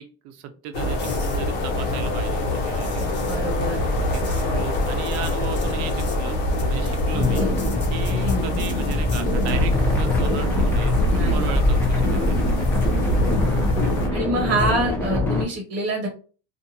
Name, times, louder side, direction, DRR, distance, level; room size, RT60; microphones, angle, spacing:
voice 1, 0.0-3.1 4.1-6.4 6.7-7.4 7.9-12.4, right 8 dB, 85° right, 7 dB, 0.6 m, -35 dB
sound 1, 0.7-14.1, left 1 dB, 85° left, 0.9 m, -24 dB
sound 2, 1.0-9.6 13.8-14.1, left 3 dB, 35° left, 0.9 m, -44 dB
voice 2, 3.2-3.9 4.2-4.6 7.3-7.5 8.1-8.4 11.1-11.6 12.1-12.2 13.3-13.5 14.1-16.1, right 2 dB, 35° right, 0 dB, 1.0 m, -27 dB
sound 3, 7.1-15.4, left 2 dB, 5° left, 0.6 m, -24 dB
2.6 x 2.4 x 2.7 m, 0.37 s
cardioid pair, 125°, 32 cm